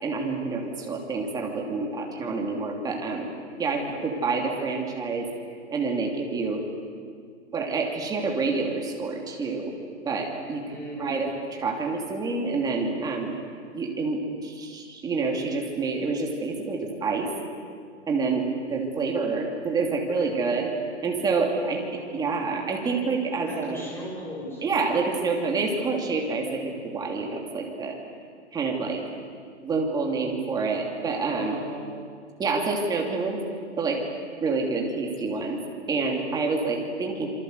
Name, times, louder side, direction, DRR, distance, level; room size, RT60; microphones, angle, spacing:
voice 1, 0.0-3.3 3.6-5.3 5.7-6.6 7.5-9.7 10.0-10.6 11.0-13.4 13.7-17.3 18.1-20.7 21.0-21.8 22.1-23.8 24.6-28.0 28.5-29.0 29.6-31.6 32.4-33.4 33.8-34.0 34.4-35.6 35.9-37.3, right 4 dB, 10° right, 1 dB, 2.8 m, -27 dB
voice 2, 10.6-11.1 20.2-20.3 21.6-22.5 23.4-24.6 31.3-32.1, equal, 5° left, -3 dB, 6.9 m, -38 dB
27.5 x 24.0 x 8.1 m, 2.1 s
hypercardioid pair, 165°, 36 cm